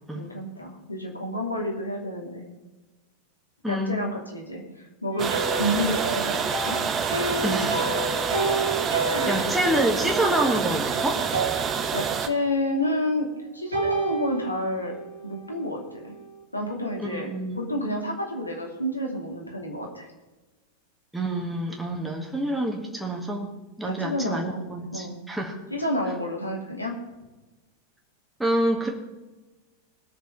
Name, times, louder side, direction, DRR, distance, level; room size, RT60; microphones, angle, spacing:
voice 1, 0.1-2.4 3.7-6.9 9.1-9.4 11.9-13.3 13.5-14.9 15.2-16.1 16.5-20.1 23.8-24.6 24.9-25.2 25.7-26.9, left 1 dB, 85° left, -1 dB, 2.7 m, -30 dB
voice 2, 3.6-4.0 7.4-7.9 9.3-11.2 17.0-17.6 21.1-23.5 23.8-25.6 28.4-28.9, right 1 dB, 5° right, 0 dB, 1.8 m, -27 dB
sound 1, 5.1-10.9 11.3-12.5 13.7-15.9, right 2 dB, 75° right, 2.0 m, -31 dB
sound 2, 5.2-12.3, right 6 dB, 25° right, 1.1 m, -27 dB
20.5 x 6.8 x 4.7 m, 1.1 s
figure-of-eight pair, 90°, 0 cm